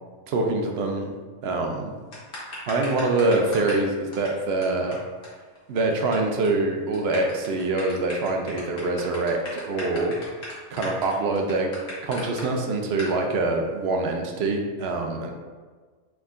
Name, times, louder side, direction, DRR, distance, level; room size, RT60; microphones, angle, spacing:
voice 1, 0.3-1.1 1.4-1.9 2.7-5.0 5.7-10.1 10.7-11.7 12.0-15.3, right 2 dB, 65° right, 3 dB, 0.8 m, -25 dB
sound 1, 2.1-3.8 4.1-4.3 4.6-4.7 4.9-5.0 5.2-5.3 5.6-6.1 6.4-6.6 6.9-12.4 13.0-13.1, left 1 dB, 70° left, 1.6 m, -37 dB
5.4 x 3.5 x 2.5 m, 1.4 s
omnidirectional pair, 1.2 m